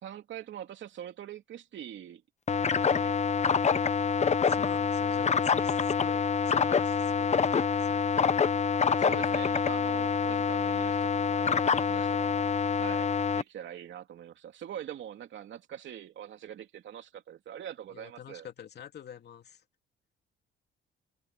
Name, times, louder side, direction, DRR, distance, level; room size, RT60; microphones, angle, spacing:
voice 1, 0.0-2.2 2.5-3.1 9.0-12.5 12.8-13.1 13.4-18.5, right 10 dB, 70° right, 2.9 m, -43 dB
sound 1, 2.5-13.4, left 6 dB, 35° left, 0.9 m, -26 dB
voice 2, 4.3-8.0 11.9-12.1 17.9-19.6, left 8 dB, 55° left, 2.8 m, -47 dB
cardioid pair, 90°, 20 cm